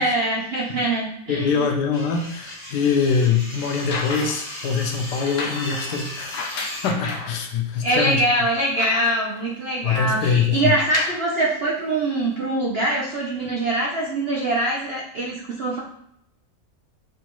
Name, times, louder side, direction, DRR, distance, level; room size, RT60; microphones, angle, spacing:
voice 1, 0.0-1.7 7.8-15.8, right 1 dB, 60° right, -3 dB, 0.6 m, -23 dB
voice 2, 1.3-6.5 6.8-8.2 9.8-10.7, left 5 dB, 80° left, 3 dB, 1.3 m, -23 dB
sound 1, 1.9-6.9, left 1 dB, 35° left, 1.3 m, -36 dB
sound 2, 3.7-4.5 5.2-7.4 7.9-8.0 8.3-9.4 10.6-11.3 12.2-12.3, left 4 dB, 60° left, 0.9 m, -32 dB
5.1 x 2.3 x 3.0 m, 0.73 s
omnidirectional pair, 1.8 m